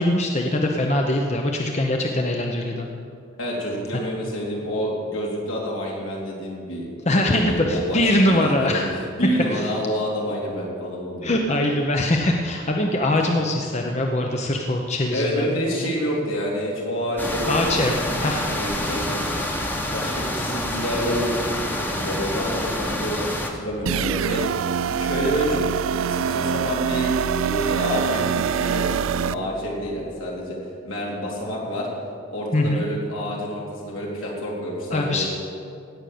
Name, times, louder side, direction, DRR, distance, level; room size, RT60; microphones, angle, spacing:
voice 1, 0.0-2.9 3.9-4.0 7.1-8.9 9.5-9.7 11.2-15.4 17.5-18.5 32.5-32.8 34.9-35.3, left 1 dB, 30° left, 2 dB, 0.8 m, -22 dB
voice 2, 3.4-11.3 15.1-19.2 19.9-21.3 21.8-23.3 23.5-24.4 25.0-25.6 26.1-30.6 30.8-31.9 32.3-35.3, equal, 75° left, -3 dB, 3.6 m, -28 dB
sound 1, 17.2-23.5, left 1 dB, 10° left, 1.1 m, -27 dB
sound 2, 23.9-29.3, right 7 dB, 75° right, 0.4 m, -24 dB
17.0 x 6.5 x 8.5 m, 2.4 s
head